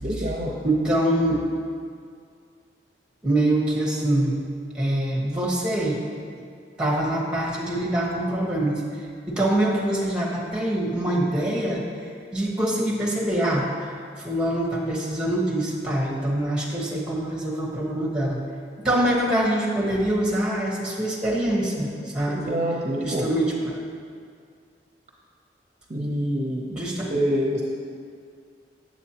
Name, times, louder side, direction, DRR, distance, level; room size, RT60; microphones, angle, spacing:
voice 1, 0.0-0.5 22.3-23.3 25.9-26.7 27.1-27.6, equal, 40° right, -2 dB, 0.6 m, -26 dB
voice 2, 0.6-1.4 3.2-4.3 4.7-6.0 6.3-6.4 6.8-13.9 14.2-18.4 18.8-22.5 23.0-23.8 26.7-27.1, right 1 dB, 5° right, -4 dB, 1.2 m, -24 dB
8.2 x 7.4 x 2.8 m, 2.2 s
head